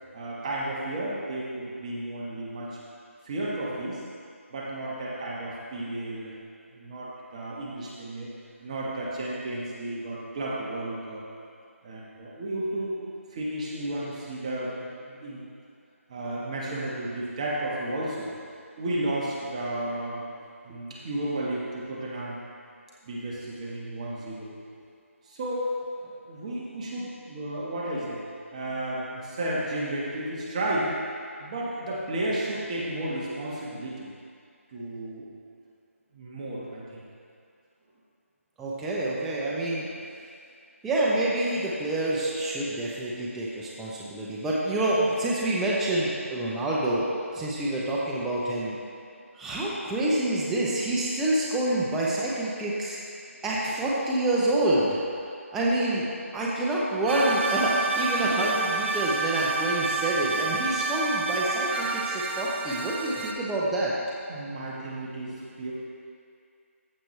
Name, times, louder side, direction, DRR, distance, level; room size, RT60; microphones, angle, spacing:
voice 1, 0.1-2.8 3.2-4.0 4.5-6.4 6.7-8.3 8.6-11.3 11.8-15.4 16.1-18.3 18.8-20.2 20.6-22.4 23.0-24.6 25.2-25.7 26.0-28.2 28.5-30.9 31.4-34.1 34.7-35.3 36.1-37.0 64.3-65.7, right 1 dB, 25° right, -5 dB, 1.5 m, -33 dB
voice 2, 38.6-39.9 40.8-47.0 47.3-48.8 49.4-53.0 53.4-55.0 55.5-56.1 56.3-63.9, right 1 dB, 5° right, -6 dB, 0.6 m, -27 dB
sound 1, 57.1-63.3, right 3 dB, 50° right, 0.9 m, -29 dB
14.5 x 5.9 x 3.3 m, 2.3 s
figure-of-eight pair, 165°, 8 cm